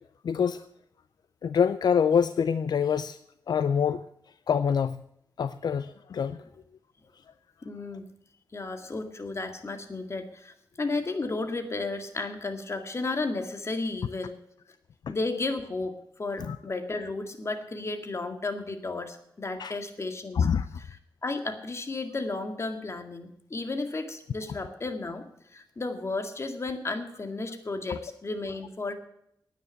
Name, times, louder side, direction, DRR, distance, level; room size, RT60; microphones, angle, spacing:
voice 1, 0.2-0.6 1.4-3.2 3.5-4.0 4.5-5.0 5.4-6.4 16.4-16.6 19.6-19.8 20.3-20.7, left 7 dB, 70° left, 13 dB, 0.5 m, -25 dB
voice 2, 7.6-8.1 8.5-14.4 15.1-20.5 20.8-20.9 21.2-28.9, left 3 dB, 40° left, 6 dB, 2.0 m, -33 dB
10.0 x 9.3 x 9.2 m, 0.73 s
cardioid pair, 75°, 8 cm